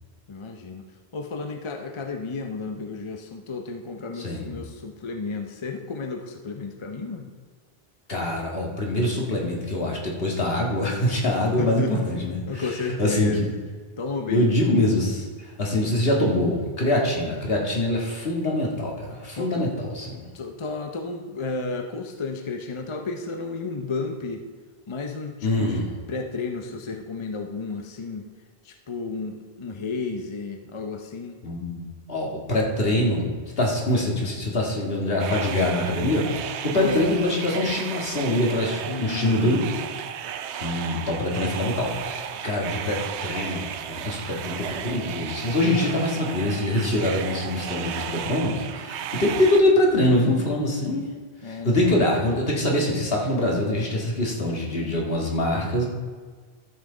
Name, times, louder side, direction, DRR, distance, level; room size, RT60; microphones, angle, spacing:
voice 1, 0.3-0.8 1.1-7.3 11.6-12.0 12.5-13.5 14.0-14.6 19.3-19.6 20.3-24.5 24.9-25.8 26.1-28.3 28.6-31.4 36.7-37.1 38.9-39.5 51.4-51.8, left 4 dB, 35° left, 4 dB, 0.6 m, -32 dB
voice 2, 4.2-4.5 8.1-12.7 13.0-13.5 14.3-15.2 15.6-20.2 25.4-25.9 31.4-33.3 33.6-39.7 40.6-51.0 51.5-55.9, left 1 dB, 60° left, -2 dB, 2.0 m, -24 dB
sound 1, 35.2-49.6, right 9 dB, 85° right, 0.9 m, -34 dB
13.0 x 7.6 x 3.9 m, 1.5 s
omnidirectional pair, 1.1 m